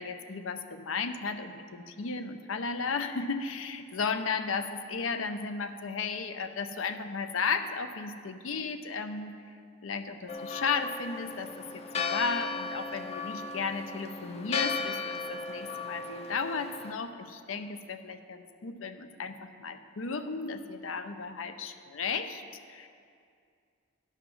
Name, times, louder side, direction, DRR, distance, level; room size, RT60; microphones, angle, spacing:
voice 1, 0.0-9.3 9.8-22.4 22.7-22.9, left 5 dB, 85° left, 9 dB, 0.6 m, -34 dB
Church bell, 10.3-16.9, left 4 dB, 30° left, 0.5 m, -36 dB
11.5 x 5.8 x 5.9 m, 2.3 s
head